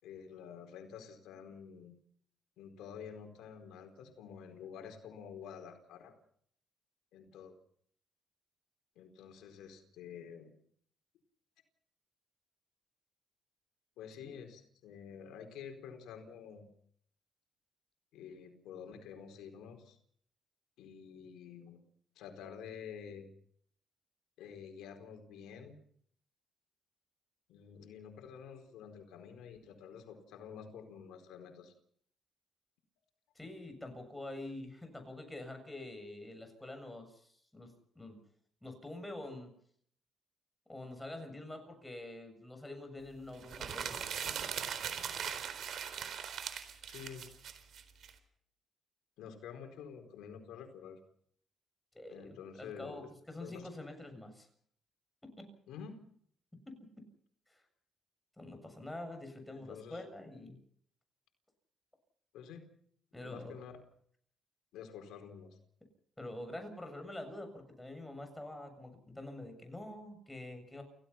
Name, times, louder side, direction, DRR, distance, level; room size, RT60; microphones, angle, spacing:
voice 1, 0.0-1.9 2.6-6.1 7.1-7.5 9.0-10.5 14.0-16.7 18.1-20.0 20.8-21.8 22.1-23.3 24.4-25.8 27.5-31.7 46.9-47.3 49.2-51.0 52.1-53.1 53.4-53.7 55.7-56.0 59.5-60.0 62.3-62.7 63.2-63.8 64.7-65.6, left 7 dB, 90° left, 5 dB, 4.3 m, -49 dB
voice 2, 33.4-38.2 38.6-39.5 40.7-44.1 51.9-54.5 55.2-55.5 56.7-57.1 57.5-57.6 58.4-60.6 63.1-63.5 66.2-70.8, left 1 dB, 10° left, 6 dB, 7.3 m, -46 dB
sound 1, 43.4-48.1, right 8 dB, 65° right, 3.9 m, -40 dB
29.5 x 16.5 x 5.8 m, 0.63 s
cardioid pair, 90°, 0 cm